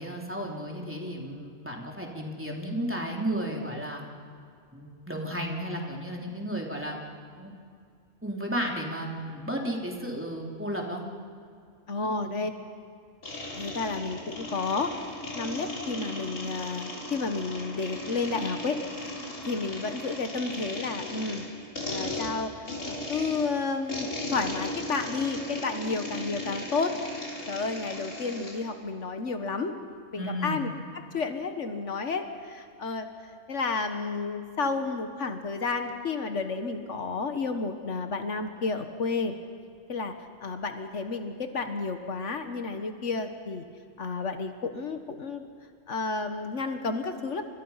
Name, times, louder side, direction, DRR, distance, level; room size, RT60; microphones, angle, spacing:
voice 1, 0.0-4.0 4.7-7.0 7.4-7.5 8.2-11.0 12.0-12.4 30.2-30.6, right 1 dB, 10° right, -1 dB, 3.2 m, -33 dB
voice 2, 11.9-12.5 13.5-14.9 15.3-18.8 19.4-21.5 21.9-22.5 22.9-29.8 30.1-30.7 30.9-33.1 33.5-39.3 39.9-40.1 40.4-43.6 44.0-45.5 45.9-47.4, left 4 dB, 70° left, 7 dB, 1.6 m, -31 dB
sound 1, 13.2-28.6, left 1 dB, 90° left, 4.4 m, -37 dB
29.5 x 25.5 x 5.7 m, 2.3 s
omnidirectional pair, 1.3 m